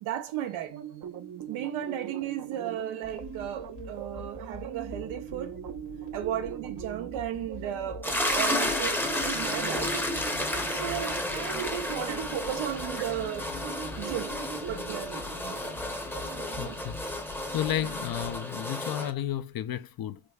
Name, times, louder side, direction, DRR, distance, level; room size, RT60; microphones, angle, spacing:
voice 1, 0.0-0.8 1.5-5.6 6.1-8.1 8.3-10.1 10.7-13.5 14.0-14.3 14.7-15.2 17.8-17.9, right 11 dB, 90° right, 0.8 m, -35 dB
sound 1, 0.7-16.8, right 9 dB, 45° right, 0.6 m, -42 dB
sound 2, 3.0-18.4, left 5 dB, 85° left, 1.5 m, -46 dB
sound 3, 8.0-19.1, left 1 dB, 5° left, 0.7 m, -32 dB
voice 2, 16.6-17.2 17.5-20.2, left 11 dB, 50° left, 0.5 m, -32 dB
4.9 x 2.6 x 2.3 m
supercardioid pair, 60°, 48 cm